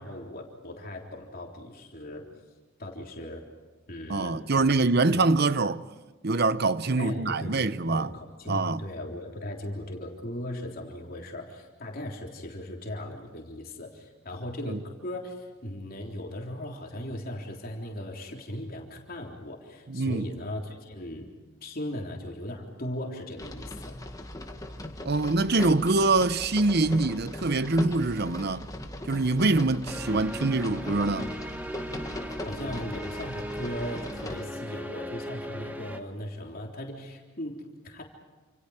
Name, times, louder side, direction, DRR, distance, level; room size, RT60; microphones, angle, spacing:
voice 1, 0.0-2.3 2.8-3.4 3.9-4.8 5.1-5.2 7.0-7.6 7.9-21.3 21.6-24.0 32.4-38.0, left 1 dB, 45° left, 3.6 m, -38 dB
voice 2, 4.1-5.8 6.2-8.1 8.5-8.8 14.7-14.8 19.9-20.3 25.0-28.7 29.1-31.3, right 3 dB, 50° right, 0.8 m, -24 dB
sound 1, 23.4-34.4, left 1 dB, 15° left, 1.9 m, -39 dB
sound 2, 29.9-36.0, equal, 10° right, 1.5 m, -38 dB
29.0 x 28.0 x 5.0 m
head